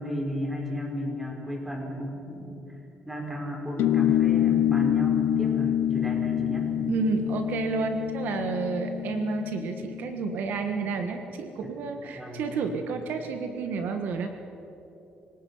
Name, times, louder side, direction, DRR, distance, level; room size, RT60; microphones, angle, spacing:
voice 1, 0.0-2.8 3.0-6.7 12.1-12.5, equal, 10° right, 1 dB, 4.5 m, -33 dB
sound 1, 3.8-10.7, left 11 dB, 85° left, 0.8 m, -26 dB
voice 2, 6.9-14.3, right 5 dB, 70° right, 6 dB, 1.5 m, -30 dB
25.5 x 18.0 x 5.6 m, 3.0 s
cardioid pair, 125°, 3 cm